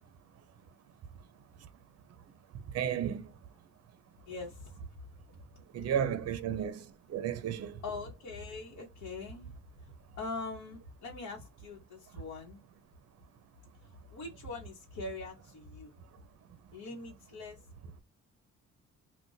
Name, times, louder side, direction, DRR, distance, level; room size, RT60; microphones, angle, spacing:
voice 1, 2.7-3.2 5.7-6.8 7.1-7.8, right 9 dB, 55° right, 0.6 m, -32 dB
voice 2, 4.2-5.0 7.8-12.6 13.8-15.9 16.7-17.6, left 3 dB, 60° left, 1.0 m, -43 dB
2.4 x 2.2 x 3.9 m
cardioid pair, 90°, 30 cm